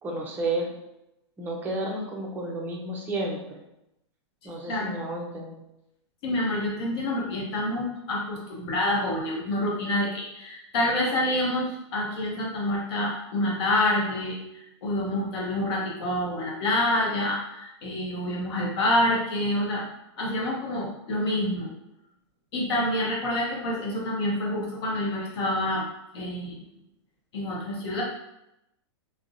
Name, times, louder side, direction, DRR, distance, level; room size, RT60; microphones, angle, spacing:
voice 1, 0.0-0.7 1.4-3.6 4.4-5.6, right 2 dB, 10° right, -1 dB, 0.5 m, -31 dB
voice 2, 6.2-19.9 20.2-21.7 22.5-25.9 26.1-26.6 27.3-28.0, left 1 dB, 60° left, -3 dB, 0.7 m, -27 dB
2.5 x 2.0 x 2.5 m, 0.86 s
hypercardioid pair, 135°, 15 cm